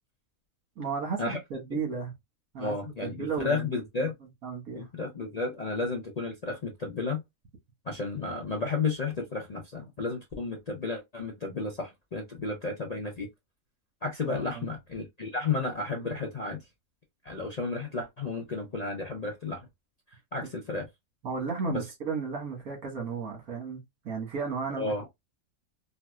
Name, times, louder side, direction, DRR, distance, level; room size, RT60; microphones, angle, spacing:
voice 1, 0.8-2.2 2.5-3.7 4.4-4.9 14.3-14.7 21.2-23.8 24.0-25.1, right 5 dB, 80° right, 1.8 m, -34 dB
voice 2, 2.6-4.1 4.7-7.2 7.9-13.3 14.0-16.6 17.2-19.7 20.3-20.9 21.7-21.8 24.8-25.1, left 3 dB, 45° left, 0.5 m, -32 dB
4.5 x 2.1 x 2.3 m
omnidirectional pair, 1.5 m